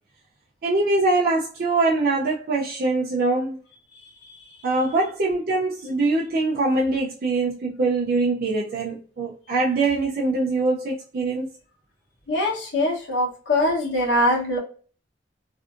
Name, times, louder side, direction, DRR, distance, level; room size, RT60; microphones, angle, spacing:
voice 1, 0.6-3.6 4.6-11.5, right 3 dB, 50° right, 0.4 m, -23 dB
voice 2, 3.9-4.7 12.3-14.6, left 1 dB, 80° left, 0.9 m, -24 dB
2.5 x 2.5 x 2.4 m
head